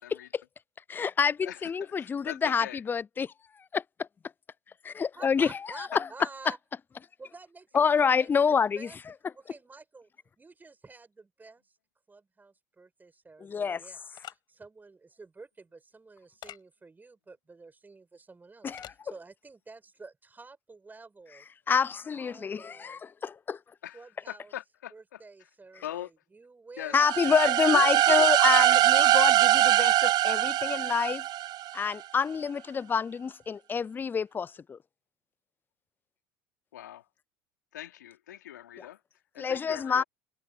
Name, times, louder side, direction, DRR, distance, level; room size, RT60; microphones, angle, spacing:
voice 1, 0.1-0.4 0.9-3.3 3.7-3.8 4.8-6.0 7.7-8.9 13.4-13.8 18.6-18.9 21.7-23.6 26.9-31.2 31.7-34.8 39.4-40.0, left 6 dB, 20° left, 0.3 m, -27 dB
voice 2, 1.4-2.8 5.9-6.0 23.8-25.5 25.8-26.1 26.8-27.0 27.6-29.2 36.7-37.1 37.7-39.0 39.3-40.0, left 12 dB, 85° left, 2.9 m, -42 dB
voice 3, 5.2-6.6 7.2-9.0 9.3-10.1 10.4-11.8 12.1-21.5 22.1-23.1 23.9-24.5 24.9-27.1 27.4-29.0, right 3 dB, 20° right, 5.9 m, -51 dB
sound 1, 14.1-14.4 16.4-16.6 18.7-19.0, left 13 dB, 50° left, 5.9 m, -44 dB
sound 2, 27.0-31.8, right 13 dB, 45° right, 0.5 m, -22 dB
hypercardioid pair, 80°, 10 cm